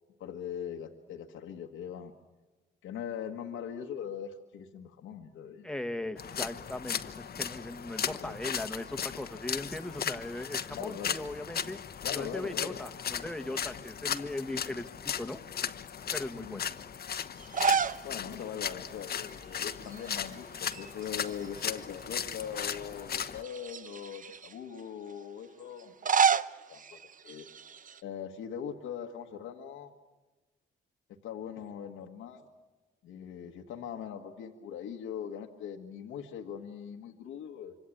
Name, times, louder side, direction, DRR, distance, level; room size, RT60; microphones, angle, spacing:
voice 1, 0.2-2.1 2.8-5.7 6.0-6.1 8.0-8.4 10.7-11.2 12.0-12.8 16.3-16.6 18.0-25.9 26.7-27.0 27.2-27.4 28.0-29.9 31.2-32.4 33.0-37.8, left 8 dB, 85° left, 3 dB, 1.7 m, -41 dB
voice 2, 5.6-11.8 12.1-15.4 16.1-16.6, left 1 dB, 5° left, 7 dB, 1.7 m, -38 dB
sound 1, 6.2-23.4, left 8 dB, 50° left, 1.2 m, -37 dB
sound 2, 17.4-18.1 18.4-18.5 19.9-20.3 20.6-21.8 22.4-22.5 23.4-24.5 25.8-28.0, right 6 dB, 40° right, 0.9 m, -30 dB
26.0 x 26.0 x 8.7 m, 1.2 s
cardioid pair, 90°, 20 cm